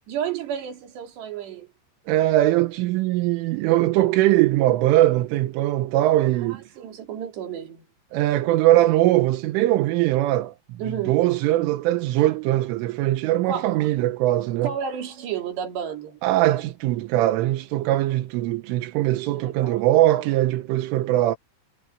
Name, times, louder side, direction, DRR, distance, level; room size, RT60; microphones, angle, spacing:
voice 1, 0.1-1.7 6.4-7.9 10.8-11.2 13.5-13.9 14.6-16.2 19.3-19.9, right 8 dB, 60° right, 5.1 m, -32 dB
voice 2, 2.1-6.6 8.1-10.5 10.9-14.7 16.2-21.4, right 15 dB, 85° right, 3.6 m, -21 dB
omnidirectional pair, 5.7 m